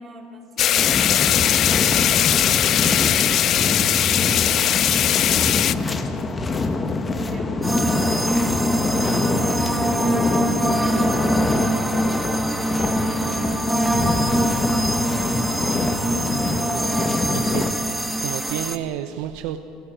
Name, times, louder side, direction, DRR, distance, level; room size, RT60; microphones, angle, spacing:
voice 1, 0.0-5.5 6.2-14.4 14.6-15.1 15.7-16.5 17.2-17.9, right 3 dB, 30° right, 2 dB, 3.6 m, -42 dB
sound 1, 0.6-5.7, left 11 dB, 50° left, 0.6 m, -19 dB
sound 2, 0.8-17.7, left 3 dB, 25° left, 1.6 m, -25 dB
sound 3, 7.6-18.8, right 1 dB, 5° right, 1.5 m, -24 dB
voice 2, 17.3-17.7 18.2-19.6, right 12 dB, 75° right, 8 dB, 0.9 m, -30 dB
29.5 x 12.0 x 9.1 m, 2.7 s
supercardioid pair, 105°, 0 cm